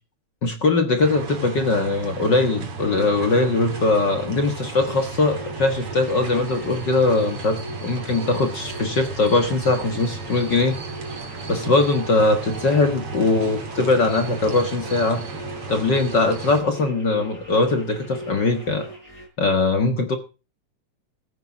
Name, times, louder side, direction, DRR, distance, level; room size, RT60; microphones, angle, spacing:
voice 1, 0.4-10.8 11.5-15.2 15.7-18.9 19.4-20.2, left 3 dB, 45° left, 7 dB, 1.8 m, -21 dB
sound 1, 1.0-16.6, right 4 dB, 50° right, 3.5 m, -35 dB
sound 2, 2.8-19.3, right 1 dB, 20° left, 7.6 m, -39 dB
14.5 x 9.2 x 7.2 m, 0.34 s
omnidirectional pair, 3.3 m